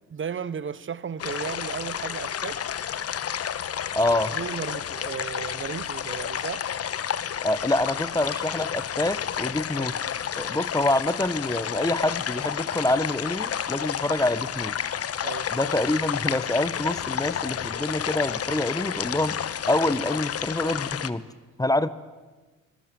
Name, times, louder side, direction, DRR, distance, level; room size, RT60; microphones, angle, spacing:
voice 1, 0.1-2.6 4.3-6.7 15.2-15.5, right 7 dB, 40° right, 1.0 m, -34 dB
sound 1, 1.2-21.1, left 9 dB, 50° left, 1.2 m, -31 dB
voice 2, 3.9-4.3 7.4-9.9 10.4-14.7 15.5-19.4 19.7-21.2 21.6-21.9, left 1 dB, 10° left, 1.0 m, -26 dB
25.0 x 22.0 x 9.2 m
cardioid pair, 90°, 30 cm